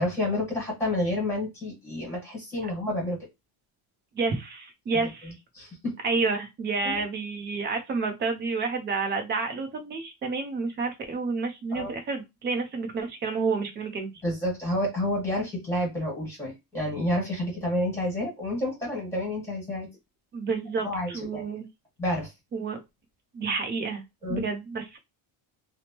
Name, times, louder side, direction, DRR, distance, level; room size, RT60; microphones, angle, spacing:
voice 1, 0.0-3.2 5.5-5.9 6.8-7.0 11.7-11.9 14.2-19.9 20.8-21.4 22.0-22.3 24.2-24.5, left 1 dB, 5° left, -2 dB, 1.5 m, -29 dB
voice 2, 4.1-5.4 6.0-14.1 20.3-21.7 22.5-22.8 23.3-24.0 24.3-25.0, right 4 dB, 25° right, 5 dB, 0.4 m, -29 dB
3.0 x 2.0 x 2.8 m, 0.21 s
cardioid pair, 175°, 48 cm